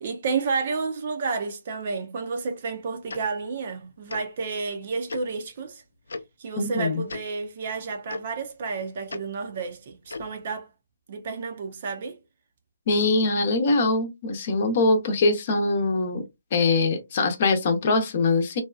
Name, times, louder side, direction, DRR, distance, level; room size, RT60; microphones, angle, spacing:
voice 1, 0.0-5.8 6.4-10.7 11.1-12.2, right 4 dB, 45° right, 0.6 m, -31 dB
Tick-tock, 3.1-3.2 4.1-4.2 5.1-5.2 6.1-6.2 7.1-7.2 8.1-8.2 9.1-9.2 10.1-10.3, left 3 dB, 70° left, 0.4 m, -35 dB
voice 2, 6.6-7.0 12.9-16.2 16.5-18.6, left 3 dB, 40° left, 0.7 m, -23 dB
2.7 x 2.2 x 2.3 m
figure-of-eight pair, 145°, 0 cm